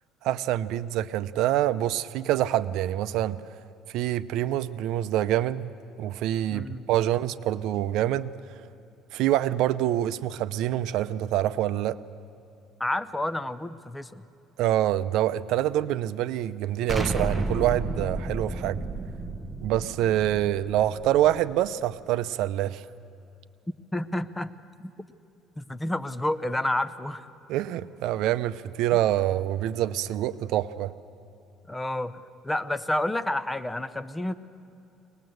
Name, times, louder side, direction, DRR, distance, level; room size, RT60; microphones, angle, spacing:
voice 1, 0.2-3.4 3.9-5.7 6.0-8.3 9.1-12.0 14.6-18.8 19.6-22.8 27.5-30.9, right 13 dB, 75° right, 14 dB, 0.6 m, -26 dB
voice 2, 6.5-6.9 12.8-14.2 23.9-24.5 24.8-25.1 25.6-27.3 31.7-34.3, left 1 dB, 10° left, 12 dB, 0.7 m, -30 dB
Explosion, 16.9-21.7, right 2 dB, 10° right, 1.2 m, -32 dB
23.5 x 19.5 x 7.9 m, 2.8 s
cardioid pair, 125°, 0 cm